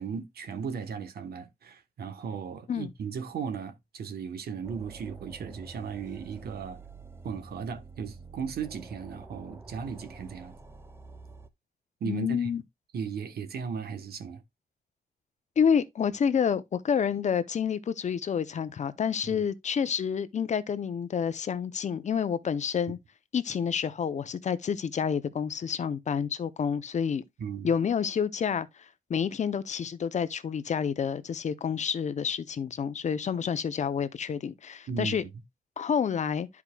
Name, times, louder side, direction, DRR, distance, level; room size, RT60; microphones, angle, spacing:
voice 1, 0.0-6.8 7.2-10.6 12.0-12.5 12.9-14.4 19.2-19.4 27.4-27.7 34.9-35.2, right 6 dB, 70° right, 1.1 m, -36 dB
sound 1, 4.6-11.5, right 4 dB, 15° right, 0.5 m, -47 dB
voice 2, 12.0-12.6 15.6-23.0 23.3-27.2 27.6-28.7 29.1-35.2 35.8-36.5, left 7 dB, 45° left, 0.6 m, -28 dB
12.5 x 4.7 x 2.2 m
wide cardioid pair, 150°, 17 cm